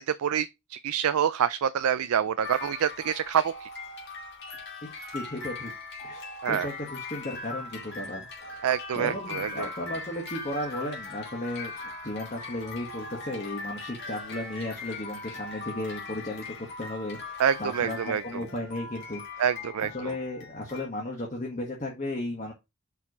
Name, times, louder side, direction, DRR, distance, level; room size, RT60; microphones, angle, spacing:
voice 1, 0.0-3.7 6.4-6.7 8.6-9.7 17.4-18.2 19.4-20.1, right 8 dB, 80° right, 0.4 m, -27 dB
sound 1, 2.4-20.9, left 3 dB, 50° left, 2.6 m, -40 dB
voice 2, 5.1-5.7 6.0-8.6 8.9-19.5 19.8-22.5, left 1 dB, 35° left, 1.5 m, -35 dB
5.7 x 4.6 x 4.7 m
head